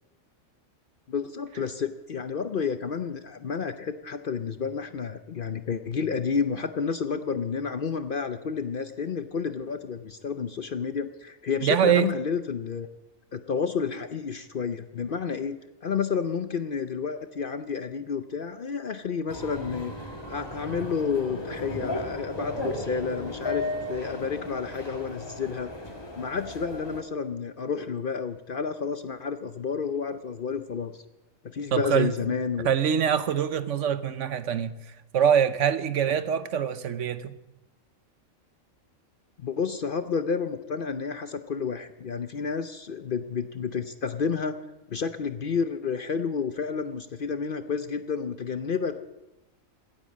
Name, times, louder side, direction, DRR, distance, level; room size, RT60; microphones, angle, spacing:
voice 1, 1.1-12.9 13.3-15.6 15.8-25.7 26.2-31.0 31.4-32.7 39.4-44.5 44.9-49.0, left 6 dB, 50° left, 0.7 m, -30 dB
voice 2, 11.6-12.1 31.7-32.1 32.6-34.8 35.1-37.3, right 8 dB, 65° right, 1.1 m, -24 dB
sound 1, 19.3-27.0, left 2 dB, 20° left, 2.0 m, -35 dB
16.5 x 10.0 x 7.4 m
omnidirectional pair, 1.4 m